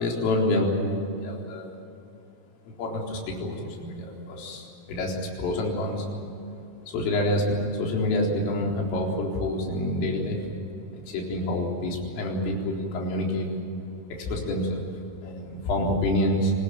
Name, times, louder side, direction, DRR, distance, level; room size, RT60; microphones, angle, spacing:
voice 1, 0.0-1.7 2.8-6.1 6.9-10.4 11.1-13.5 14.2-14.9 15.2-16.5, left 1 dB, 75° left, -1 dB, 6.6 m, -27 dB
26.0 x 20.0 x 9.1 m, 2.7 s
omnidirectional pair, 5.9 m